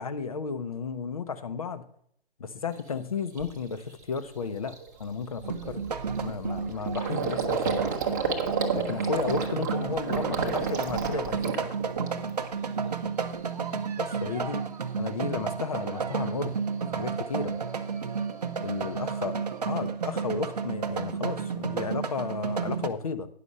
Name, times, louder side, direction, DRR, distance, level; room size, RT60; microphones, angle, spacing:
voice 1, 0.0-1.9 2.4-5.8 6.2-7.9 8.7-11.7 14.0-14.7 15.0-16.5 16.9-17.6 18.6-19.4 19.6-23.3, left 5 dB, 35° left, 11 dB, 0.7 m, -33 dB
Gurgling, 2.8-2.9 3.4-3.6 4.0-4.2 4.4-12.5 12.8-13.5, right 5 dB, 20° right, 0.9 m, -32 dB
sound 1, 5.4-22.9, right 5 dB, 40° right, 0.7 m, -32 dB
10.0 x 6.0 x 5.3 m, 0.66 s
figure-of-eight pair, 145°, 31 cm